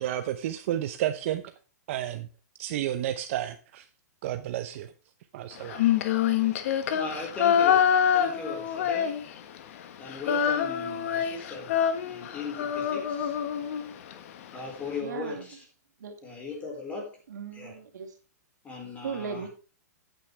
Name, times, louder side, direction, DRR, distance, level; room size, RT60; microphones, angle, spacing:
voice 1, 0.0-1.4 1.9-2.3 2.6-3.9 4.2-4.9 5.3-5.8, right 12 dB, 50° right, 9 dB, 0.8 m, -31 dB
Female singing, 5.7-9.6 9.8-14.1, left 8 dB, 50° left, 1.5 m, -26 dB
voice 2, 6.9-9.1 10.0-11.8 12.0-13.4 14.5-15.6 16.2-17.2 17.5-17.7 18.6-19.5, left 3 dB, 15° left, 1 dB, 4.6 m, -38 dB
voice 3, 15.0-15.5 16.0-16.1 17.3-18.1 19.0-19.5, right 6 dB, 80° right, 5 dB, 2.7 m, -37 dB
13.0 x 9.1 x 3.4 m, 0.34 s
hypercardioid pair, 160°, 9 cm